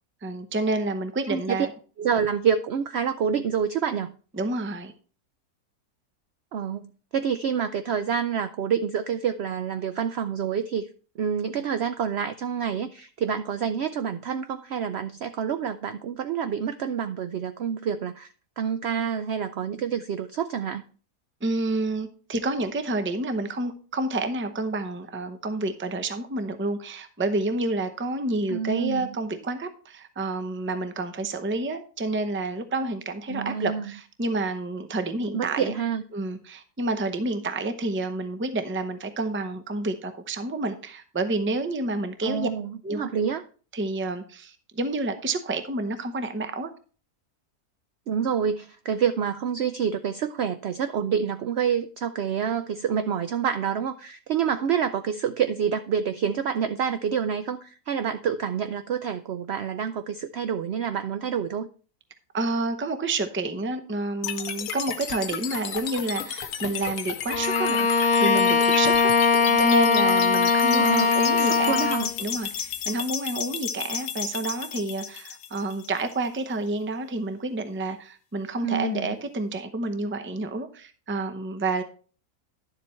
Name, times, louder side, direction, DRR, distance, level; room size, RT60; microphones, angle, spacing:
voice 1, 0.2-1.7 4.3-4.9 21.4-35.7 36.1-42.5 42.8-43.0 43.7-46.7 62.3-71.9 72.2-81.8, right 2 dB, 15° right, 9 dB, 0.4 m, -29 dB
voice 2, 2.0-4.1 6.5-10.9 11.2-18.3 18.6-20.8 28.5-29.2 33.3-33.9 35.3-36.0 42.2-43.4 48.1-61.7 69.4-69.7 70.8-72.1 78.6-79.2, right 7 dB, 70° right, 10 dB, 0.6 m, -28 dB
sound 1, 64.2-76.3, left 9 dB, 75° left, 1.2 m, -33 dB
Bowed string instrument, 67.3-72.1, left 4 dB, 60° left, 1.4 m, -21 dB
11.0 x 7.4 x 3.1 m, 0.39 s
omnidirectional pair, 1.6 m